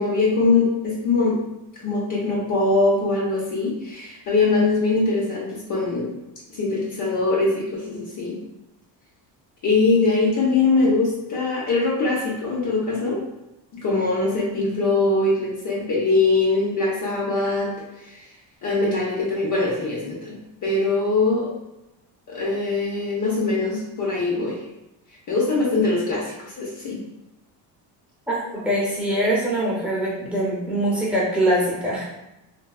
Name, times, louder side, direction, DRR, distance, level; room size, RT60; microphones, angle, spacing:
voice 1, 0.0-1.4 1.8-6.1 6.5-8.4 9.6-13.2 13.7-17.7 18.1-18.2 18.6-21.5 22.3-24.6 25.3-27.0, left 3 dB, 45° left, -4 dB, 0.7 m, -22 dB
voice 2, 28.6-32.0, right 1 dB, 5° right, -7 dB, 0.8 m, -23 dB
3.4 x 2.2 x 2.3 m, 0.95 s
cardioid pair, 140°, 44 cm